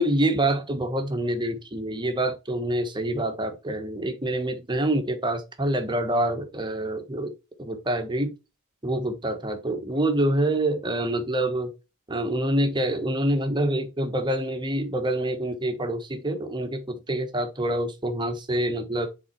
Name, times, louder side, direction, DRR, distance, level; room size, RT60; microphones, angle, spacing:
voice 1, 0.0-7.3 7.6-8.3 8.8-11.7 12.1-19.1, right 1 dB, 20° right, 1.3 m, -26 dB
7.2 x 4.3 x 4.4 m
head